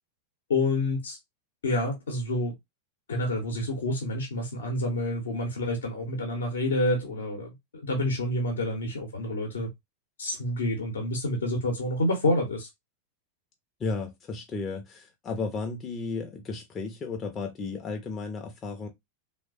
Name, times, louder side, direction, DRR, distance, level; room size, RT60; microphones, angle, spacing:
voice 1, 0.5-1.2 1.6-2.5 3.1-9.7 10.2-12.7, left 1 dB, 65° left, 0.7 m, -28 dB
voice 2, 13.8-18.9, left 4 dB, 25° left, 0.5 m, -34 dB
3.2 x 2.0 x 2.4 m
figure-of-eight pair, 90°, 0 cm